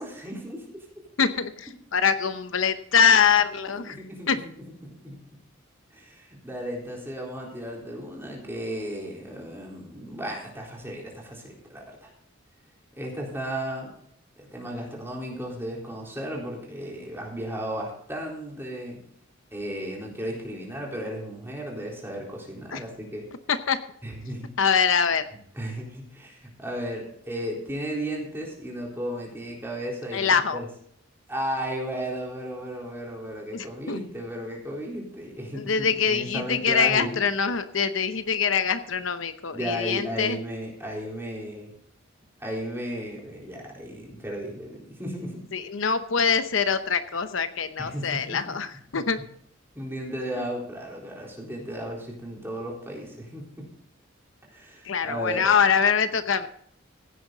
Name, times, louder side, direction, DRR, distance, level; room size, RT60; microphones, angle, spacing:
voice 1, 0.0-1.0 3.8-4.3 4.8-5.2 5.9-12.1 13.0-13.9 14.4-19.0 19.5-23.3 24.0-24.5 25.5-30.7 31.3-37.2 39.5-41.7 42.4-45.4 47.8-48.6 48.9-49.0 49.8-53.7 54.5-55.5, equal, 10° right, -2 dB, 3.9 m, -34 dB
voice 2, 1.2-4.0 4.3-4.4 22.7-22.8 23.5-23.8 24.6-25.3 30.1-30.6 33.5-34.0 35.5-40.4 45.5-49.2 54.8-56.5, left 6 dB, 75° left, 10 dB, 0.8 m, -24 dB
16.0 x 9.5 x 4.0 m, 0.66 s
head